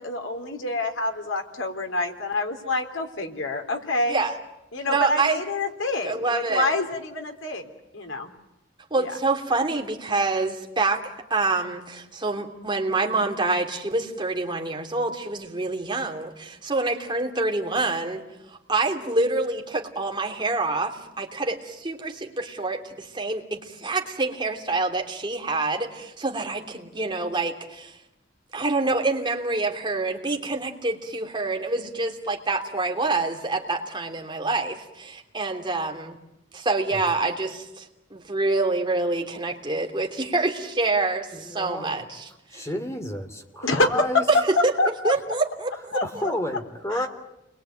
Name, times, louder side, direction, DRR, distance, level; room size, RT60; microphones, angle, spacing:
voice 1, 0.0-4.2 4.7-7.7 7.9-8.3 9.0-9.2 43.6-44.2 44.8-44.9 45.9-46.3 46.9-47.1, left 2 dB, 85° left, 5 dB, 3.4 m, -27 dB
voice 2, 4.8-5.4 6.0-6.7 8.9-11.0 11.3-28.0 28.5-36.2 36.5-42.7 44.3-44.7 45.0-45.7 46.1-46.3, right 3 dB, 25° right, 2 dB, 3.1 m, -26 dB
voice 3, 41.3-42.0 42.5-44.2 46.0-47.1, left 1 dB, 15° left, 6 dB, 2.8 m, -31 dB
29.5 x 22.0 x 9.2 m, 0.91 s
head